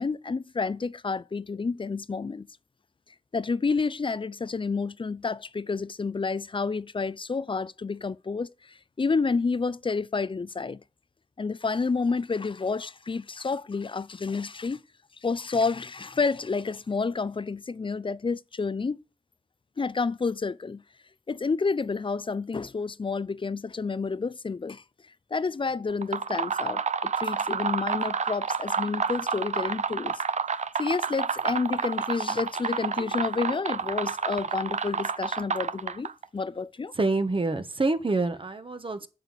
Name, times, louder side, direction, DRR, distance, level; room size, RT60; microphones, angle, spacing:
voice 1, 0.0-2.5 3.3-10.8 11.4-14.8 15.2-19.0 19.8-20.8 21.3-24.8 25.3-30.1 30.8-36.9, left 4 dB, 35° left, 0.5 m, -29 dB
sound 1, 25.9-36.2, right 6 dB, 50° right, 0.6 m, -29 dB
voice 2, 36.9-39.1, right 3 dB, 35° right, 1.4 m, -27 dB
8.9 x 6.4 x 8.4 m
cardioid pair, 50°, 15 cm